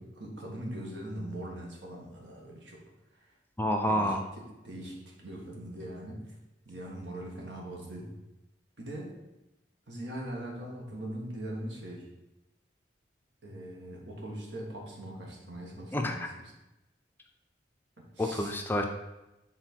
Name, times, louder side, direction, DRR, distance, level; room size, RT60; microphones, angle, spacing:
voice 1, 0.0-2.8 3.1-3.3 3.9-6.4 6.6-8.1 8.8-9.1 9.9-12.1 13.4-16.3 18.0-18.6, right 1 dB, 75° right, -1 dB, 1.5 m, -41 dB
voice 2, 3.6-4.2 15.9-16.3 18.2-18.9, equal, 10° left, 3 dB, 0.4 m, -28 dB
6.1 x 3.9 x 4.5 m, 0.97 s
head